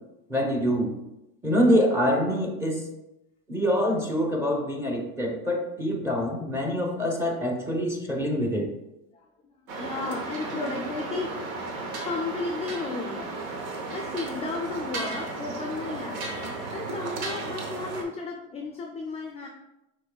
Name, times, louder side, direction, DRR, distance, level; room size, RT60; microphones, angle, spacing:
voice 1, 0.3-0.9 1.4-2.9 3.5-8.7, equal, 5° right, 0 dB, 0.9 m, -25 dB
sound 1, 9.7-18.0, right 3 dB, 80° right, 1.0 m, -34 dB
voice 2, 9.8-11.3 12.0-13.6 13.9-19.5, left 3 dB, 15° left, 1 dB, 0.4 m, -34 dB
6.5 x 3.1 x 2.3 m, 0.91 s
supercardioid pair, 110°, 40 cm